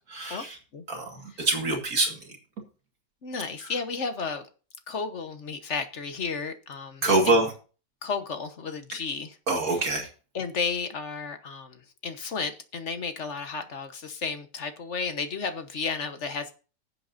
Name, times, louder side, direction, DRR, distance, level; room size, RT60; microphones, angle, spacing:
voice 1, 0.1-0.6 0.9-2.2 7.0-7.5 9.5-10.1, right 2 dB, 60° right, 2 dB, 2.4 m, -25 dB
voice 2, 3.2-4.5 4.9-7.4 8.0-9.4 9.7-9.8 10.3-16.5, left 5 dB, 45° left, 8 dB, 1.3 m, -33 dB
18.5 x 7.7 x 2.7 m, 0.35 s
omnidirectional pair, 1.8 m